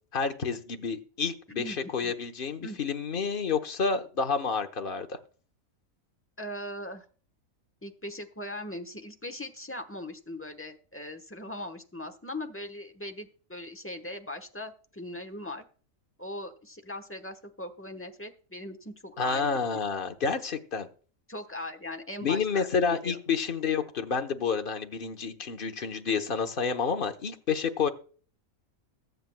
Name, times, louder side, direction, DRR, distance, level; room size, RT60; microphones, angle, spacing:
voice 1, 0.1-5.2 19.2-20.9 22.2-27.9, left 5 dB, 40° left, 6 dB, 1.1 m, -29 dB
voice 2, 1.6-2.1 2.6-2.8 6.4-7.0 7.8-15.6 16.2-19.6 21.3-23.2, left 1 dB, 10° left, 5 dB, 1.0 m, -40 dB
21.5 x 7.8 x 2.2 m, 0.41 s
omnidirectional pair, 1.5 m